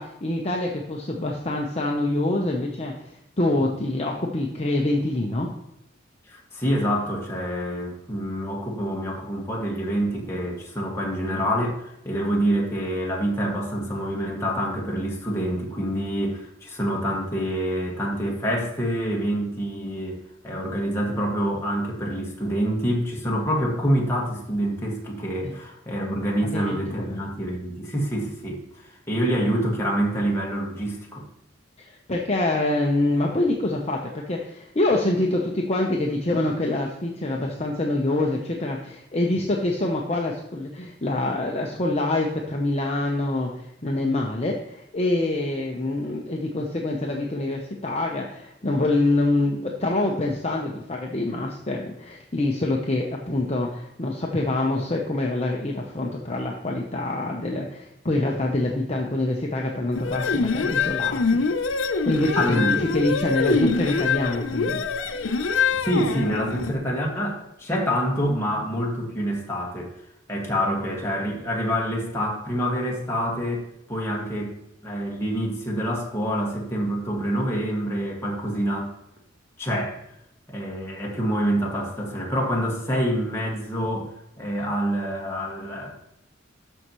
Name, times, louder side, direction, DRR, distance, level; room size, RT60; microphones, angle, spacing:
voice 1, 0.0-5.5 25.4-25.6 26.4-27.2 31.8-61.4 61.7-64.8, left 2 dB, 35° left, 0 dB, 0.8 m, -26 dB
voice 2, 6.3-20.2 20.4-31.3 62.4-63.0 65.7-69.9 70.3-73.6 73.9-74.5 74.8-78.9 79.6-80.0 80.5-85.9, equal, 15° left, -2 dB, 1.9 m, -26 dB
sound 1, 60.0-66.7, left 4 dB, 85° left, 0.6 m, -24 dB
13.0 x 5.5 x 3.1 m, 0.83 s
head